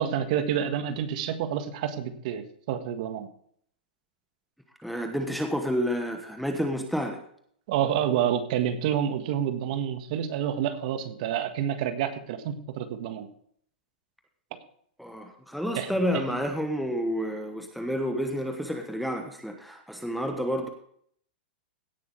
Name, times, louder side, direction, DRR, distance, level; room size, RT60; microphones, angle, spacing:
voice 1, 0.0-3.3 7.7-13.3 15.8-15.9, right 9 dB, 45° right, 8 dB, 1.6 m, -28 dB
voice 2, 4.8-7.2 15.0-20.7, equal, ahead, 3 dB, 1.1 m, -30 dB
17.0 x 6.4 x 4.6 m, 0.63 s
supercardioid pair, 155°, 5 cm